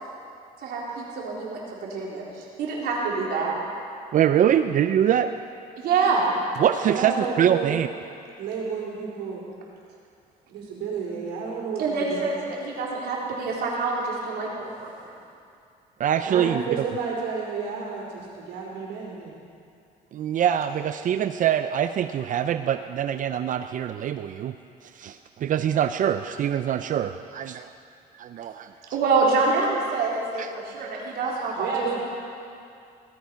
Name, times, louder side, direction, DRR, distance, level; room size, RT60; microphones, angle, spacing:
voice 1, 0.6-3.5 5.8-6.3 11.8-14.9 28.9-31.7, right 4 dB, 70° right, -3 dB, 3.9 m, -26 dB
voice 2, 4.1-5.3 6.6-7.9 16.0-16.8 20.1-24.5 24.9-27.7 28.2-28.7 30.4-30.5, right 10 dB, 50° right, 10 dB, 0.5 m, -24 dB
voice 3, 6.8-7.7 8.4-9.4 10.5-12.3 14.9-15.0 16.2-19.3 31.1-31.2 31.5-32.0, right 5 dB, 90° right, -2 dB, 4.8 m, -31 dB
18.5 x 13.0 x 5.8 m, 2.4 s
cardioid pair, 110°, 17 cm